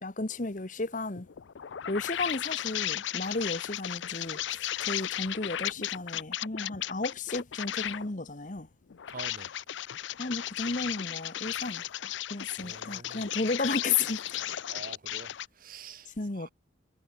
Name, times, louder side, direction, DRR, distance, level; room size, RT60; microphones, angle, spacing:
voice 1, 0.0-1.3 1.9-8.7 10.2-11.8 12.3-14.4 16.1-16.5, left 3 dB, 40° left, 1.3 m, -33 dB
sound 1, 1.2-8.1 8.9-15.5, left 12 dB, 75° left, 0.5 m, -35 dB
voice 2, 9.1-9.5 12.6-13.3 14.7-16.5, right 4 dB, 45° right, 1.0 m, -46 dB
head